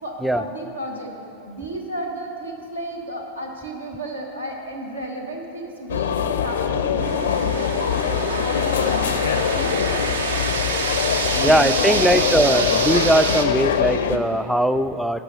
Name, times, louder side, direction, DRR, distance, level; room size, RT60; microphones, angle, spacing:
voice 1, 0.0-1.1 1.4-10.1 11.3-12.4, right 1 dB, 85° right, 1 dB, 1.2 m, -33 dB
sound 1, 5.9-14.2, left 8 dB, 65° left, 0.4 m, -23 dB
sound 2, 7.0-13.5, right 4 dB, 65° right, 0.6 m, -27 dB
voice 2, 11.4-15.2, right 1 dB, ahead, 12 dB, 0.3 m, -20 dB
11.0 x 5.7 x 6.7 m, 2.7 s
figure-of-eight pair, 90°, 0 cm